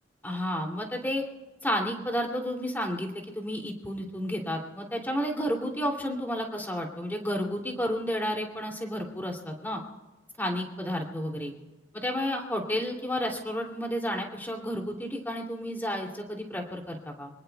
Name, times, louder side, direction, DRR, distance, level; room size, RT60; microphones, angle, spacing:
voice 1, 0.2-1.2 1.6-9.8 10.4-11.5 11.9-17.3, equal, 10° left, 1 dB, 2.8 m, -31 dB
28.0 x 19.5 x 2.3 m, 1.2 s
head